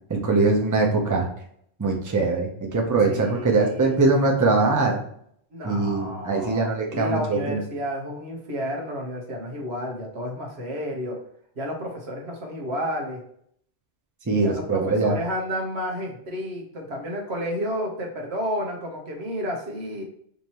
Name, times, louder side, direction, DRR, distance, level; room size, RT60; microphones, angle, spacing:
voice 1, 0.1-1.3 1.8-5.0 5.6-7.6 14.3-15.1, right 3 dB, 20° right, 0 dB, 0.8 m, -22 dB
voice 2, 3.1-4.0 5.5-11.2 11.6-13.2 14.4-20.0, equal, 85° right, 0 dB, 1.4 m, -31 dB
5.2 x 2.9 x 3.0 m, 0.67 s
omnidirectional pair, 1.1 m